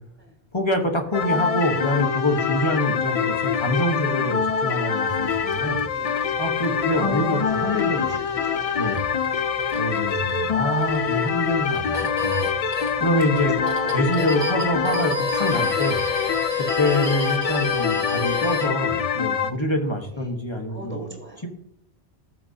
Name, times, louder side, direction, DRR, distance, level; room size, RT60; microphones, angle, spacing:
voice 1, 0.5-5.8 6.4-8.0 8.8-9.0 9.7-12.5 13.0-13.6 13.9-16.0 16.6-21.0, left 1 dB, 25° left, 3 dB, 1.2 m, -25 dB
sound 1, 1.1-19.5, left 7 dB, 65° left, 0.3 m, -25 dB
voice 2, 2.7-3.0 3.8-4.1 5.8-6.3 6.7-8.8 9.3-9.5 13.4-14.2 16.1-16.2 20.1-20.3 20.7-21.4, right 1 dB, 5° left, -2 dB, 3.8 m, -39 dB
sound 2, 5.1-18.7, left 3 dB, 40° right, 2.1 m, -32 dB
14.5 x 6.5 x 2.7 m, 0.74 s
omnidirectional pair, 1.2 m